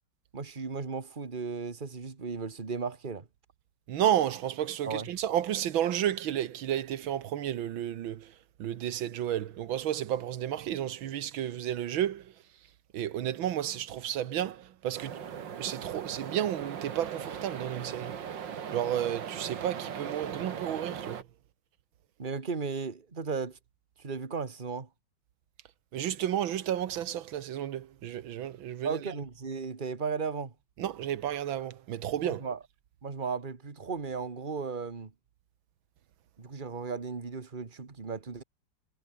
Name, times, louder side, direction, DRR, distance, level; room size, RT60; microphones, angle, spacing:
voice 1, 0.3-3.3 4.8-5.1 22.2-23.6 24.0-24.9 28.8-30.5 32.2-32.6 33.0-35.1 36.4-38.4, right 5 dB, 25° right, 1.9 m, -35 dB
voice 2, 3.9-8.3 8.6-12.2 12.9-15.2 15.6-18.1 18.7-21.2 25.9-29.0 30.8-32.4, right 11 dB, 85° right, 1.9 m, -32 dB
sound 1, 14.9-21.2, right 8 dB, 70° right, 2.3 m, -39 dB
omnidirectional pair, 2.1 m